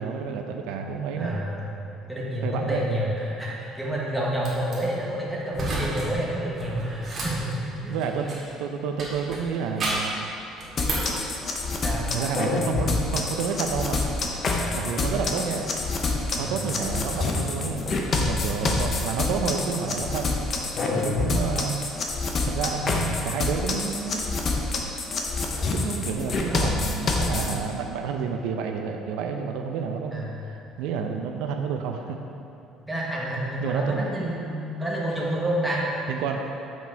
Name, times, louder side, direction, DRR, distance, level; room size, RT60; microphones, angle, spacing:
voice 1, 0.0-1.4 2.4-2.8 7.9-10.3 12.1-14.0 14.7-15.6 16.4-20.3 20.9-21.8 22.5-24.2 25.7-30.3 30.8-32.2 33.6-34.3 36.1-36.4, right 6 dB, 85° right, 4 dB, 0.6 m, -30 dB
voice 2, 1.2-1.7 2.1-8.0 11.8-12.1 14.6-14.9 16.3-16.7 20.9-21.1 22.8-23.0 26.5-27.0 30.1-30.6 32.9-35.9, right 1 dB, 5° right, -6 dB, 1.3 m, -29 dB
sound 1, 4.4-4.8 5.5-6.1 6.4-8.5 9.0-10.2 10.6-11.2, right 2 dB, 30° right, 1.9 m, -31 dB
sound 2, 10.8-27.5, left 3 dB, 30° left, 0.7 m, -27 dB
7.1 x 6.2 x 4.7 m, 2.8 s
cardioid pair, 165°, 0 cm